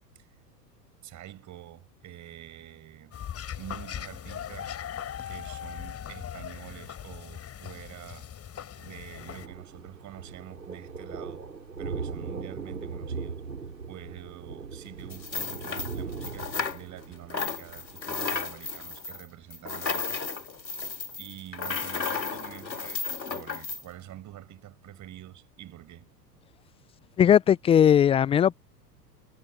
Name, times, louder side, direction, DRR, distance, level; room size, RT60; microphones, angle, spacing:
voice 1, 1.0-3.1 3.5-4.8 5.3-8.3 8.8-11.5 11.8-13.4 13.8-20.2 21.2-26.1, right 13 dB, 35° right, 6.9 m, -46 dB
sound 1, 3.1-9.5, left 9 dB, 30° left, 7.6 m, -39 dB
Thunder, 8.8-18.8, right 5 dB, 90° right, 4.0 m, -39 dB
sound 2, 15.1-17.0 17.3-23.8, left 5 dB, 90° left, 2.6 m, -33 dB
voice 2, 27.2-28.6, left 9 dB, 10° left, 0.4 m, -19 dB
figure-of-eight pair, 95°, 50 cm